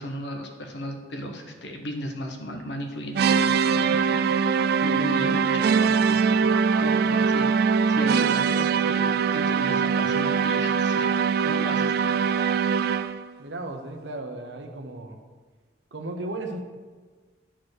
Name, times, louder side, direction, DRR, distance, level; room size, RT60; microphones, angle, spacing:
voice 1, 0.0-11.1 11.4-12.3, equal, 70° left, 4 dB, 1.1 m, -36 dB
sound 1, 3.1-13.3, right 6 dB, 60° right, 0.3 m, -22 dB
voice 2, 13.4-15.2 15.9-16.6, right 2 dB, 85° right, 5 dB, 1.0 m, -35 dB
10.5 x 4.5 x 6.5 m, 1.4 s
head